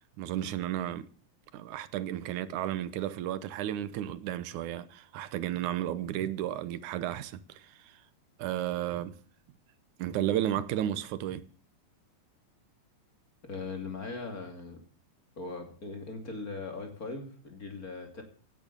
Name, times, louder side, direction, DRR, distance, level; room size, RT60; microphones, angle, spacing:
voice 1, 0.2-1.1 1.5-8.0 8.4-9.2 10.0-11.4, right 12 dB, 90° right, 2.4 m, -33 dB
voice 2, 13.4-14.8 15.4-18.2, left 3 dB, 30° left, 2.8 m, -39 dB
17.5 x 9.1 x 6.8 m
omnidirectional pair, 3.4 m